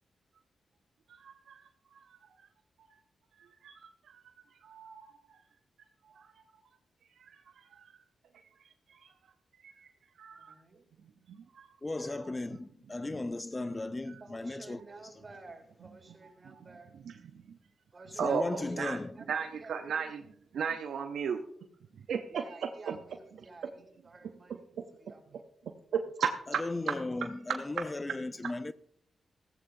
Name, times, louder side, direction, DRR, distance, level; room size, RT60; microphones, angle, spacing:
voice 1, 1.1-2.5 2.9-3.0 3.4-5.4 6.0-6.5 7.2-8.0 8.6-9.1 9.6-10.5 11.3-12.6 13.1-13.2 13.6-14.2 14.8-14.9 15.8-16.0 16.4-17.3 18.0-21.4 22.0-23.2 23.6-23.7 24.5-24.8 25.3-28.5, right 6 dB, 75° right, 0.7 m, -38 dB
voice 2, 10.3-10.9 14.2-16.9 17.9-18.9 19.2-20.2 22.3-24.6 25.0-25.5, right 3 dB, 45° right, 3.5 m, -52 dB
voice 3, 11.8-14.8 18.2-19.2 26.6-28.7, left 2 dB, 30° left, 0.5 m, -36 dB
15.0 x 15.0 x 2.7 m
supercardioid pair, 40°, 0 cm